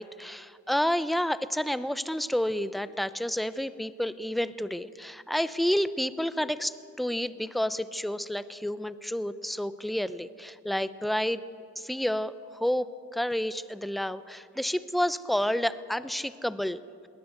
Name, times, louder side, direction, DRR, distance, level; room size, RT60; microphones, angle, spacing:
voice 1, 0.0-11.4 11.8-16.8, equal, ahead, 14 dB, 0.7 m, -30 dB
21.0 x 18.0 x 7.9 m, 2.5 s
cardioid pair, 90°, 30 cm